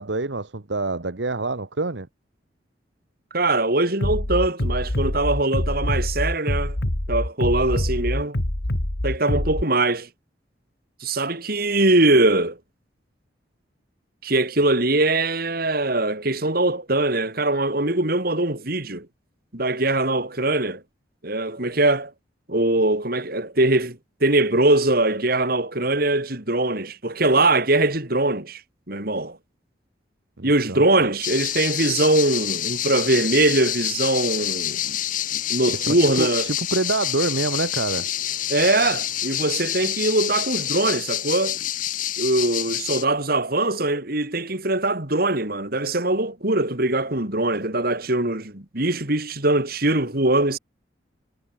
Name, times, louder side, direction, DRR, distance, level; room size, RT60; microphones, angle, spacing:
voice 1, 0.0-2.1 30.4-31.1 35.7-38.1, right 3 dB, 70° right, 1.3 m, -27 dB
voice 2, 3.3-6.8 7.1-8.4 9.0-10.1 11.0-12.6 14.2-19.1 19.5-20.8 21.2-22.1 22.5-28.6 28.9-29.4 30.4-35.0 35.3-36.5 38.5-41.6 42.2-50.6, right 2 dB, 55° right, 3.7 m, -22 dB
Bass drum, 4.0-9.6, left 1 dB, 60° left, 2.1 m, -25 dB
sound 1, 31.2-43.0, left 12 dB, 45° left, 0.7 m, -27 dB
head